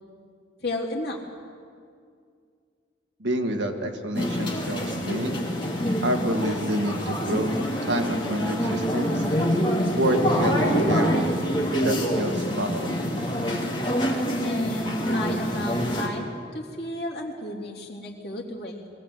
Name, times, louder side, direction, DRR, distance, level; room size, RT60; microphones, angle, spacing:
voice 1, 0.6-1.2 14.4-16.2 16.5-18.9, left 1 dB, 55° left, -3 dB, 3.4 m, -33 dB
voice 2, 3.2-5.4 6.0-7.5 7.9-9.2 10.0-11.3 11.8-13.0, equal, 75° right, 4 dB, 1.9 m, -28 dB
sound 1, 4.1-16.1, equal, 25° left, 2.8 m, -26 dB
22.5 x 17.0 x 8.2 m, 2.2 s
head